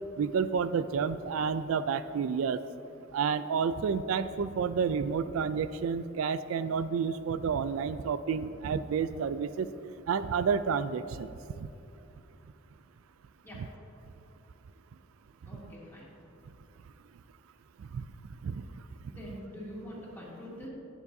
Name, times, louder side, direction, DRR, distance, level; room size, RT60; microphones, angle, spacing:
voice 1, 0.2-2.6 3.1-9.7 10.1-11.3 11.6-11.7 17.8-18.0 18.4-18.6, right 6 dB, 85° right, 14 dB, 0.3 m, -30 dB
voice 2, 15.4-16.0 19.1-20.7, equal, 10° left, -7 dB, 2.5 m, -44 dB
19.0 x 7.1 x 2.7 m, 2.8 s
head